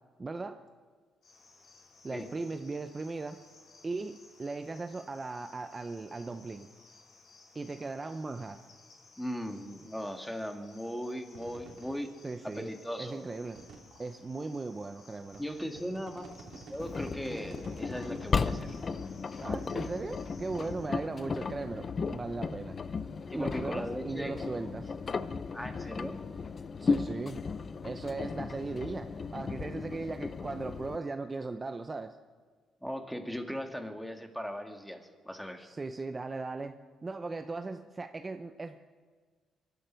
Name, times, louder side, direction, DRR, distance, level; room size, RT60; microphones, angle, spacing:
voice 1, 0.2-0.6 2.0-3.4 3.8-6.7 7.5-8.6 12.2-12.7 13.0-13.6 14.0-15.4 19.4-21.9 22.1-22.7 23.3-24.9 26.8-27.5 27.8-32.2 35.6-38.8, right 3 dB, 25° right, 7 dB, 0.7 m, -38 dB
Cricket, 1.2-20.9, left 3 dB, 65° left, 4.5 m, -59 dB
voice 2, 9.2-12.1 12.4-13.3 15.4-18.8 23.3-24.5 25.5-26.2 32.8-35.7, equal, 5° left, 4 dB, 1.9 m, -38 dB
sound 1, 11.3-11.9 12.4-12.5 13.3-14.0 14.7-14.8 15.3-18.9, right 4 dB, 70° right, 2.9 m, -50 dB
Engine, 16.8-31.0, left 5 dB, 40° left, 0.6 m, -35 dB
25.0 x 12.0 x 4.6 m, 1.5 s
cardioid pair, 90°, 0 cm